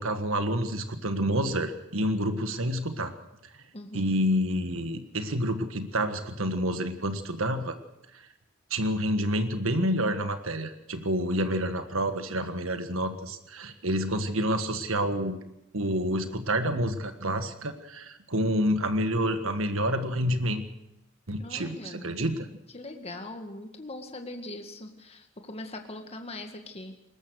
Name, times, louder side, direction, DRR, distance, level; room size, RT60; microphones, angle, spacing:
voice 1, 0.0-3.1 3.4-3.5 3.9-7.8 8.7-15.4 15.7-20.6 21.3-22.5, equal, 75° right, 8 dB, 1.7 m, -28 dB
voice 2, 3.7-4.2 21.4-22.2 22.7-26.9, left 2 dB, 30° left, 5 dB, 1.9 m, -41 dB
21.5 x 19.5 x 6.4 m, 0.85 s
head